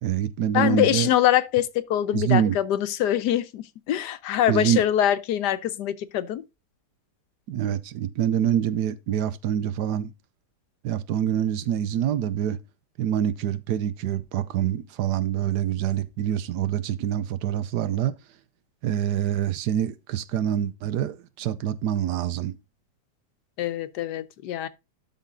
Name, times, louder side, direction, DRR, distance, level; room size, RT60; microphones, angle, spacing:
voice 1, 0.0-1.1 2.1-2.6 4.5-4.8 7.5-10.1 10.8-12.6 13.0-18.1 18.8-22.6, right 10 dB, 80° right, 1.3 m, -25 dB
voice 2, 0.5-6.4 23.6-24.7, left 11 dB, 90° left, 1.3 m, -24 dB
12.0 x 4.1 x 3.6 m
omnidirectional pair, 1.7 m